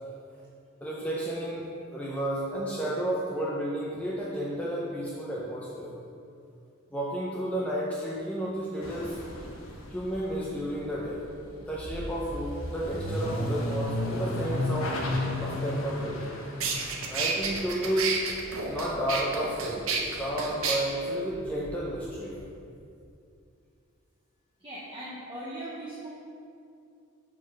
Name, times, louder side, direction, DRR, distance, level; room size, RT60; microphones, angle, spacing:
voice 1, 0.8-5.9 6.9-9.2 9.9-11.3 11.6-15.0 15.4-16.2 17.0-18.1 18.7-22.4, right 1 dB, 5° left, -6 dB, 0.5 m, -32 dB
sound 1, 8.8-19.8 20.1-22.5, left 1 dB, 75° left, 0.9 m, -35 dB
sound 2, 16.2-16.3 16.6-20.8, right 5 dB, 75° right, 0.7 m, -30 dB
voice 2, 24.6-26.1, right 1 dB, 25° right, -8 dB, 0.8 m, -39 dB
5.0 x 4.0 x 5.7 m, 2.5 s
head